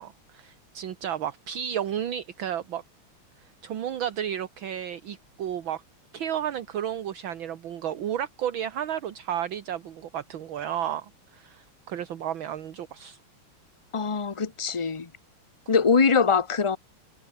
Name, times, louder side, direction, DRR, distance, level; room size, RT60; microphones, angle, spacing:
voice 1, 0.0-2.8 3.4-5.8 6.1-13.2, right 10 dB, 65° right, 2.0 m, -32 dB
voice 2, 13.9-15.1 15.7-16.8, left 5 dB, 35° left, 0.5 m, -23 dB
omnidirectional pair, 2.4 m